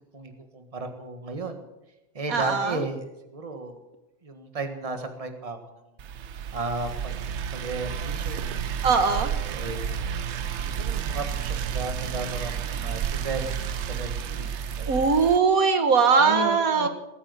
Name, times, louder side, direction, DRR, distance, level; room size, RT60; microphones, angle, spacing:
voice 1, 0.1-1.6 2.1-3.0 3.3-3.8 4.2-5.6 6.5-7.2 7.5-8.6 9.1-10.0 10.6-14.5 14.8-14.9 16.2-16.9, right 3 dB, 25° right, 6 dB, 1.6 m, -34 dB
voice 2, 2.3-2.8 8.8-9.3 14.9-16.9, right 5 dB, 80° right, 8 dB, 1.8 m, -21 dB
sound 1, 6.0-15.4, right 8 dB, 60° right, 0.9 m, -31 dB
19.5 x 8.9 x 8.1 m, 0.96 s
omnidirectional pair, 1.5 m